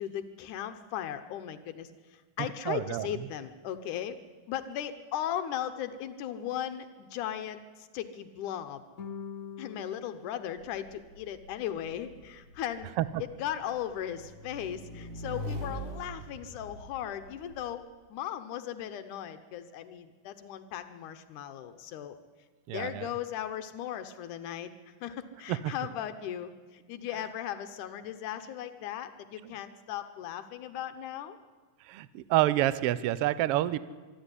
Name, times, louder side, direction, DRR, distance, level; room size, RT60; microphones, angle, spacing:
voice 1, 0.0-4.2 4.5-8.8 9.6-12.9 13.4-22.2 22.7-24.7 25.0-31.4, left 10 dB, 80° left, 9 dB, 2.4 m, -37 dB
voice 2, 2.7-3.1 13.0-13.1 22.7-23.1 25.5-25.7 31.9-33.8, right 14 dB, 80° right, 16 dB, 1.3 m, -28 dB
sound 1, 9.0-11.5, left 7 dB, 55° left, 0.9 m, -45 dB
Motorcycle / Engine, 10.6-17.7, equal, 65° right, 3.8 m, -43 dB
24.5 x 12.5 x 9.8 m, 1.4 s
omnidirectional pair, 3.5 m